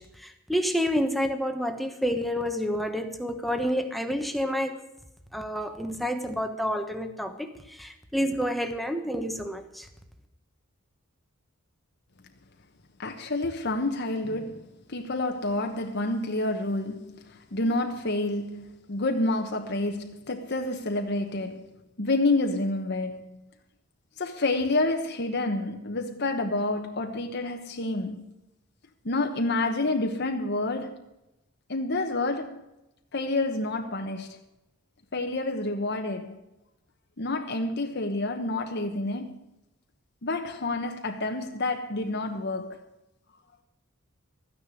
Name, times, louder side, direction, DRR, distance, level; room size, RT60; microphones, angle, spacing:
voice 1, 0.0-4.8 5.3-9.9, equal, ahead, 1.2 m, -29 dB
voice 2, 13.0-23.4 24.2-28.2 29.0-31.1 31.7-32.6 33.1-34.4 35.1-36.4 37.2-39.4 40.2-42.8, left 2 dB, 55° left, 1.2 m, -29 dB
13.5 x 9.8 x 6.4 m
head